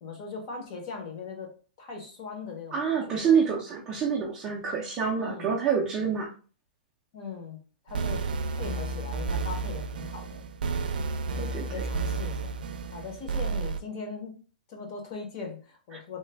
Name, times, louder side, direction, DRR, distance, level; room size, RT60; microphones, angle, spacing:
voice 1, 0.0-3.2 5.2-5.5 7.1-7.6 7.8-8.2 8.5-10.9 11.6-12.5 12.9-14.4 14.7-16.2, left 4 dB, 30° left, 2 dB, 0.7 m, -40 dB
voice 2, 2.7-6.3 11.3-11.6 15.9-16.0, right 6 dB, 15° right, -2 dB, 0.4 m, -27 dB
sound 1, 7.9-13.8, right 4 dB, 85° right, 0.4 m, -31 dB
3.1 x 2.1 x 3.2 m, 0.37 s
hypercardioid pair, 180°, 5 cm